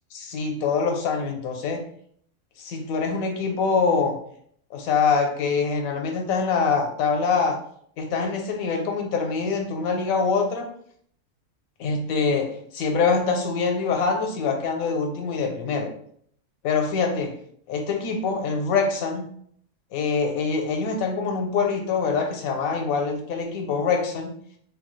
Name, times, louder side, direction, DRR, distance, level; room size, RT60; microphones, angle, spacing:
voice 1, 0.1-1.9 2.6-4.2 4.7-7.6 8.0-10.7 11.8-15.9 16.6-17.4 17.7-19.2 19.9-24.3, left 5 dB, 85° left, 3 dB, 1.1 m, -24 dB
3.4 x 2.3 x 3.1 m, 0.63 s
omnidirectional pair, 1.5 m